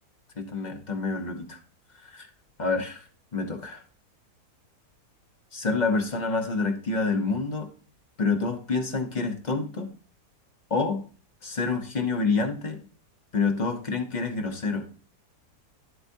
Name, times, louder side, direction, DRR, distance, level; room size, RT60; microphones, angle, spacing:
voice 1, 0.4-1.6 2.0-2.3 2.6-3.1 3.3-3.8 5.5-7.7 8.2-9.9 10.7-11.0 11.4-12.8 13.3-14.9, left 4 dB, 30° left, 4 dB, 1.0 m, -27 dB
9.5 x 8.1 x 2.7 m, 0.38 s
omnidirectional pair, 1.7 m